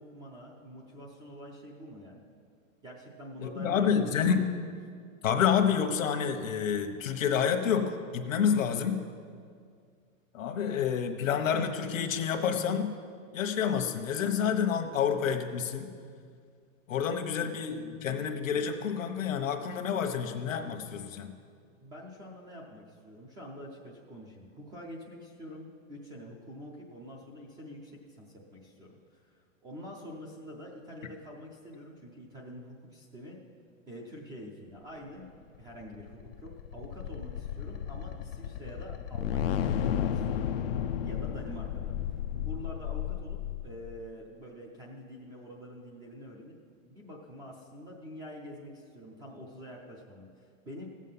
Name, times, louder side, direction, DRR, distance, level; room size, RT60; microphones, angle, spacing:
voice 1, 0.0-2.2 2.8-4.3 21.8-33.4 33.9-40.6 41.0-46.5 46.8-50.8, equal, 10° right, -2 dB, 0.5 m, -46 dB
voice 2, 3.4-4.4 5.2-9.0 10.3-12.9 13.3-15.9 16.9-21.3, left 7 dB, 75° left, 5 dB, 1.2 m, -28 dB
sound 1, 35.6-44.0, left 9 dB, 50° left, 0.4 m, -33 dB
15.5 x 7.4 x 5.6 m, 2.1 s
hypercardioid pair, 155°, 40 cm